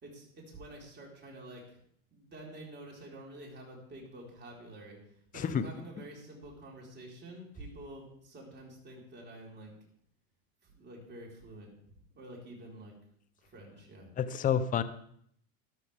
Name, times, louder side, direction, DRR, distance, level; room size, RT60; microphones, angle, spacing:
voice 1, 0.0-1.8 2.1-9.7 10.6-12.9 13.4-14.1, right 1 dB, 25° right, -2 dB, 4.5 m, -48 dB
voice 2, 14.2-14.8, left 8 dB, 20° left, 12 dB, 0.7 m, -29 dB
13.5 x 12.5 x 3.5 m, 0.66 s
hypercardioid pair, 115°, 42 cm